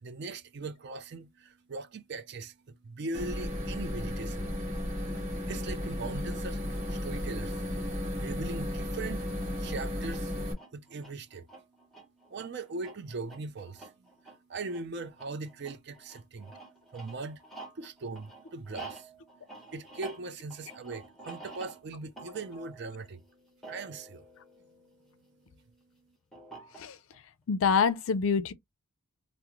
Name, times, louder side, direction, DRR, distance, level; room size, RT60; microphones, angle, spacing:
voice 1, 0.0-4.6 5.5-6.6 6.9-9.2 9.6-10.3 10.7-11.5 12.3-13.9 14.2-16.5 16.9-17.4 17.7-19.1 19.7-23.2 23.7-24.3 25.5-25.6, right 3 dB, 50° right, 0.4 m, -40 dB
sound 1, 3.1-10.5, left 1 dB, 30° right, 1.3 m, -34 dB
sound 2, 9.5-25.3 26.3-27.2, right 3 dB, ahead, 0.8 m, -49 dB
voice 2, 27.5-28.5, left 6 dB, 65° left, 0.4 m, -26 dB
3.6 x 2.0 x 2.9 m
head